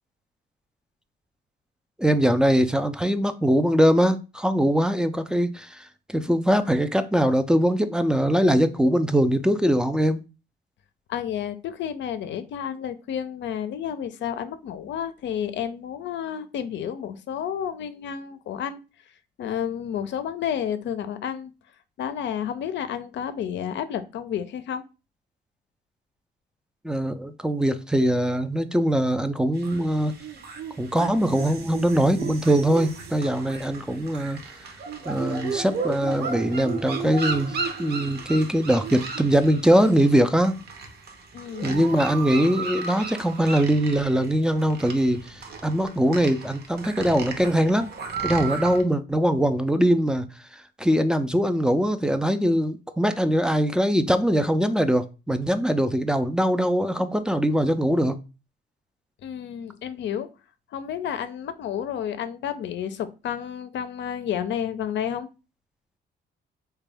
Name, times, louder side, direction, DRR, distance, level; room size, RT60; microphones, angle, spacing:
voice 1, 2.0-5.8 6.1-10.2 26.8-30.1 30.8-34.4 35.1-40.6 41.6-47.9 48.2-50.3 50.5-58.2, equal, 5° right, 0.3 m, -22 dB
voice 2, 11.1-18.8 19.4-21.5 22.0-24.8 41.3-41.9 59.2-60.3 60.7-65.3, left 9 dB, 65° left, 0.5 m, -31 dB
sound 1, 29.6-48.8, right 5 dB, 55° right, 0.7 m, -35 dB
3.5 x 2.2 x 3.3 m
cardioid pair, 90°, 20 cm